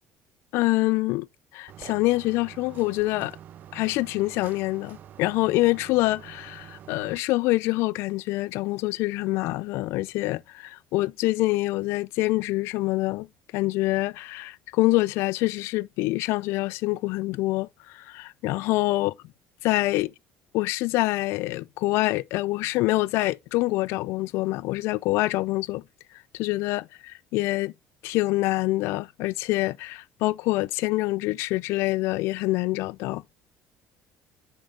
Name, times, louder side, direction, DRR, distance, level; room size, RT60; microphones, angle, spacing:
voice 1, 0.5-1.3 1.5-3.4 3.7-13.3 13.5-19.1 19.6-20.1 20.5-25.8 26.3-27.7 28.0-33.2, left 20 dB, 70° left, 0.3 m, -26 dB
sound 1, 1.7-7.2, right 10 dB, 40° right, 0.4 m, -46 dB
7.1 x 5.4 x 3.8 m
cardioid pair, 170°, 4 cm